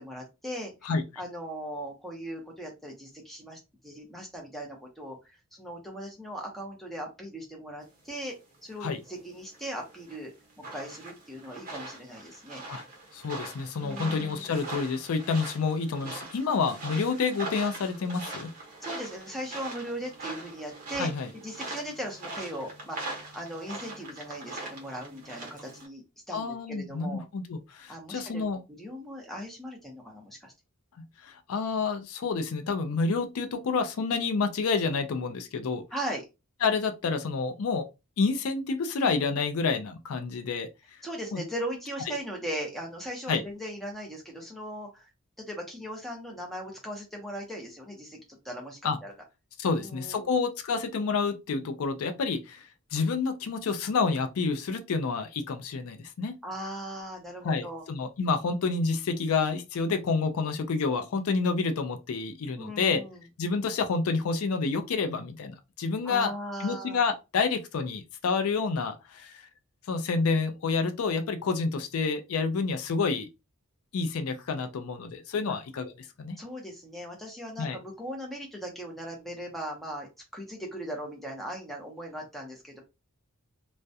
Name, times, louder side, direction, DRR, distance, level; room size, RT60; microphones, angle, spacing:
voice 1, 0.0-8.4 8.6-10.3 10.6-12.6 13.8-14.5 18.8-21.1 21.4-27.2 27.9-30.5 35.9-36.2 41.0-45.1 45.4-49.1 49.7-50.3 56.4-57.8 62.6-63.2 66.0-67.0 75.5-75.6 76.4-82.8, equal, ahead, 0.6 m, -39 dB
sound 1, 8.7-25.9, right 2 dB, 40° right, 0.8 m, -42 dB
voice 2, 13.1-18.5 21.0-21.3 26.3-28.6 31.0-35.8 36.6-37.9 38.2-40.7 41.3-41.4 43.3-43.4 48.8-49.0 49.6-56.4 57.4-63.0 63.4-66.3 66.6-69.4 69.9-73.3 73.9-75.9 76.2-76.4 77.6-77.8, left 4 dB, 75° left, 0.4 m, -29 dB
2.3 x 2.1 x 2.6 m
head